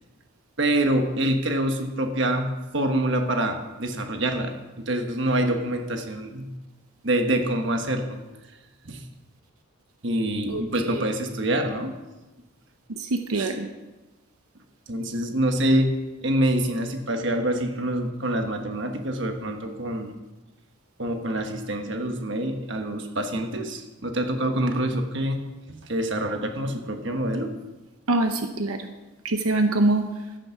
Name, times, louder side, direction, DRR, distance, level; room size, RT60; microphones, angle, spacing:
voice 1, 0.6-6.5 7.0-8.2 8.8-9.0 10.0-12.0 13.3-13.5 14.9-15.9 16.2-20.1 21.0-25.4 25.7-27.5, right 1 dB, 55° right, 5 dB, 1.3 m, -26 dB
voice 2, 12.9-13.7 28.1-28.9 29.2-30.1, right 2 dB, 85° right, 6 dB, 0.9 m, -24 dB
13.0 x 8.5 x 5.8 m, 1.1 s
head